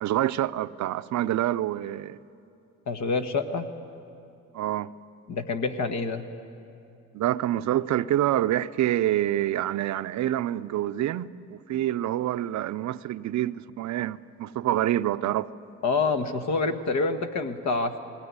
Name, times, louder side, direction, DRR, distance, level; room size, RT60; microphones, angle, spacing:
voice 1, 0.0-2.2 4.5-4.9 7.1-15.5, right 13 dB, 70° right, 0.6 m, -27 dB
voice 2, 2.9-3.7 5.3-6.3 15.8-18.0, left 4 dB, 65° left, 1.5 m, -27 dB
19.0 x 18.5 x 9.6 m
cardioid pair, 90°, 30 cm